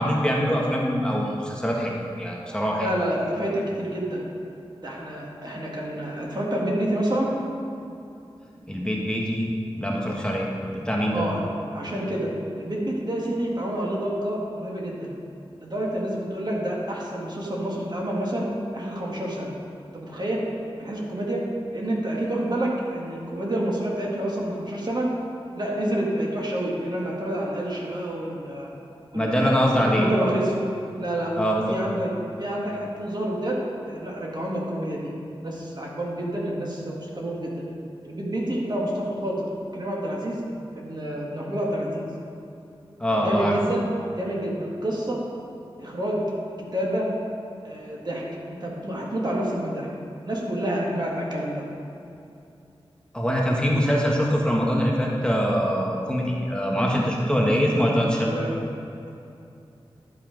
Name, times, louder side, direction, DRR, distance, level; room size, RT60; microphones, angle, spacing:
voice 1, 0.0-2.9 8.7-9.5 9.7-11.2 29.1-30.3 31.4-31.7 43.0-43.5 53.1-58.4, equal, 10° left, -3 dB, 1.4 m, -23 dB
voice 2, 2.8-4.2 4.8-7.3 11.1-11.4 11.7-12.3 12.6-15.1 15.6-18.5 18.7-19.5 19.9-20.4 20.8-21.4 21.7-25.1 25.6-28.7 29.1-30.5 31.0-31.3 31.7-32.1 32.4-33.6 33.9-35.1 35.4-37.6 38.0-40.4 40.7-42.1 43.1-43.9 44.1-45.2 45.8-46.2 46.7-47.1 47.6-48.2 48.5-49.9 50.2-51.6 58.2-58.6, right 1 dB, 45° right, -3 dB, 2.0 m, -28 dB
11.0 x 5.6 x 5.2 m, 2.7 s
cardioid pair, 50°, 10 cm